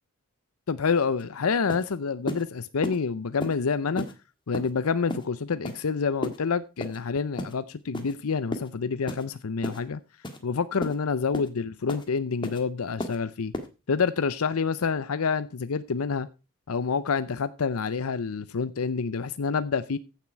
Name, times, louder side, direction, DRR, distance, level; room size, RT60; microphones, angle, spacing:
voice 1, 0.7-4.0 4.5-10.0 10.4-13.5 13.9-16.3 16.7-20.0, left 5 dB, 85° left, 0.6 m, -27 dB
sound 1, 1.2-1.3 1.7-1.9 2.3-2.4 2.8-3.0 3.4-3.6 4.0-4.1 4.5-4.7 5.1-5.3 5.6-5.8 6.2-6.4 6.8-7.0 7.4-7.5 7.9-8.1 8.5-8.7 9.1-9.3 9.6-9.8 10.2-10.4 10.8-11.0 11.3-11.5 11.9-12.1 12.4-12.6 13.0-13.2 13.5-13.7, left 1 dB, 20° left, 1.6 m, -33 dB
15.0 x 7.4 x 4.5 m
head